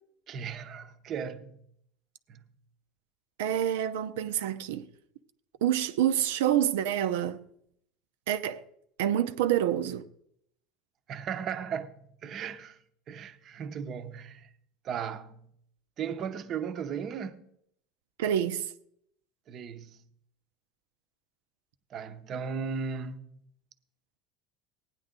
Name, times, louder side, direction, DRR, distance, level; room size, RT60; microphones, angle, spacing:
voice 1, 0.3-1.7 2.3-2.5 11.1-12.8 13.1-14.5 14.8-15.5 16.0-17.5 19.5-20.0 21.9-23.4, right 6 dB, 40° right, 0.8 m, -36 dB
voice 2, 3.4-4.9 5.6-7.4 8.3-8.6 9.0-10.0 18.2-18.7, right 10 dB, 90° right, 0.7 m, -27 dB
16.5 x 9.9 x 3.8 m
supercardioid pair, 130°, 0 cm